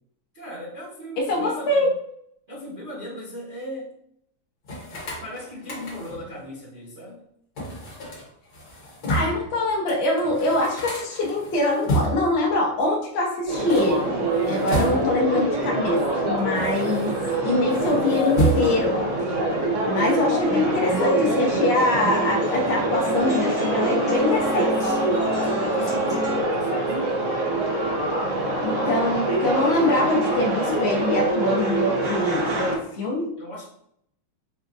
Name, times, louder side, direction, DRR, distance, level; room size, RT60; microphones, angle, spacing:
voice 1, 0.3-1.9 2.5-3.9 5.2-7.2 14.5-14.9 24.9-27.4 33.4-33.7, equal, 40° right, -9 dB, 0.7 m, -38 dB
voice 2, 1.2-1.9 9.1-14.1 14.5-17.1 17.4-19.0 19.8-25.0 28.6-33.3, left 2 dB, 85° left, -1 dB, 0.5 m, -23 dB
sound 1, 4.6-6.3 7.6-9.5 9.9-10.0 10.2-12.4 13.5-15.3 16.1-17.4 17.7-19.0, right 1 dB, 50° left, 1.5 m, -30 dB
sound 2, 13.5-32.8, right 2 dB, 90° right, 0.6 m, -25 dB
sound 3, 20.4-26.4, equal, ahead, 0.9 m, -33 dB
4.9 x 2.3 x 2.5 m, 0.71 s
omnidirectional pair, 2.3 m